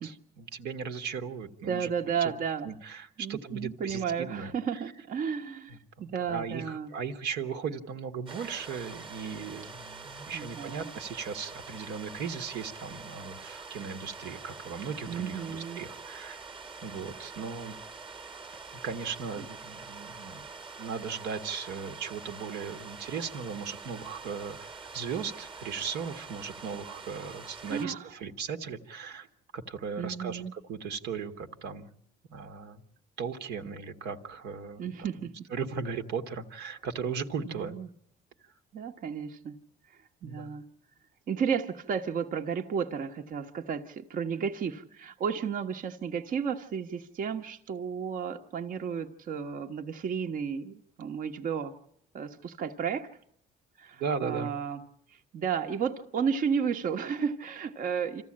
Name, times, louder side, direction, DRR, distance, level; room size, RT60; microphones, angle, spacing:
voice 1, 0.0-1.9 2.2-2.3 2.6-4.8 5.7-5.8 6.3-16.4 16.8-17.8 18.8-20.5 20.8-29.3 29.5-31.9 32.3-32.8 33.2-34.9 35.5-37.7 40.2-40.5 54.0-54.5, right 6 dB, 80° right, 5 dB, 1.5 m, -37 dB
voice 2, 1.7-2.7 3.2-6.9 10.3-10.9 15.1-15.8 19.4-19.5 27.7-28.1 30.0-30.5 34.8-35.3 37.4-37.9 38.7-39.6 39.9-40.7 41.3-51.8 52.1-53.1 53.8-54.8 55.1-58.2, right 7 dB, 55° right, 4 dB, 1.2 m, -33 dB
sound 1, 8.3-27.9, right 4 dB, 30° right, 1.4 m, -45 dB
26.5 x 14.5 x 8.7 m, 0.71 s
cardioid pair, 110°, 17 cm